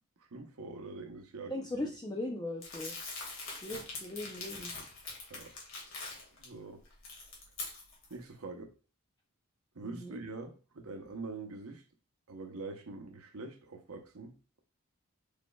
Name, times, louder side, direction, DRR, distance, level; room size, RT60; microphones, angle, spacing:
voice 1, 0.2-1.5 5.3-5.5 6.4-6.8 8.1-8.7 9.7-11.8 12.3-14.4, right 3 dB, 80° right, 0.8 m, -44 dB
voice 2, 1.5-3.0 3.6-4.7 9.8-10.2, left 1 dB, 15° left, 0.4 m, -39 dB
Crumpling crinkling, 2.6-6.4 6.9-8.1, left 3 dB, 65° left, 1.8 m, -43 dB
5.3 x 4.3 x 2.2 m
head